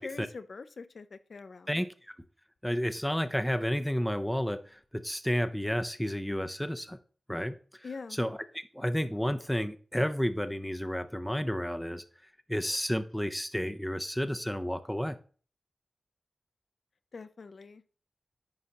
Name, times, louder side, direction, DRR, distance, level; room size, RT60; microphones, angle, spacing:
voice 1, 0.0-1.8 7.8-8.2 17.1-17.8, left 4 dB, 60° left, 12 dB, 0.4 m, -44 dB
voice 2, 1.7-2.1 2.6-7.0 7.3-12.0 12.5-15.2, equal, 5° left, 9 dB, 0.4 m, -31 dB
9.5 x 5.1 x 2.8 m, 0.41 s
wide cardioid pair, 105°, 0 cm